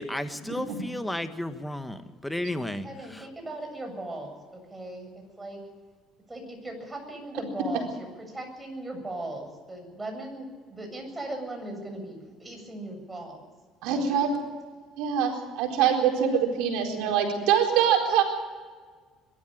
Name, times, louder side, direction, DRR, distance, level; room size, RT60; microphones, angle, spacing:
voice 1, 0.0-3.2, left 1 dB, 5° left, 9 dB, 1.6 m, -33 dB
voice 2, 2.8-5.1 5.4-5.6 6.3-13.4 13.9-14.2, right 1 dB, 15° right, 3 dB, 7.6 m, -38 dB
voice 3, 13.8-14.3 15.0-18.2, right 8 dB, 80° right, 2 dB, 4.2 m, -24 dB
22.5 x 13.0 x 9.0 m, 1.5 s
supercardioid pair, 80°, 0 cm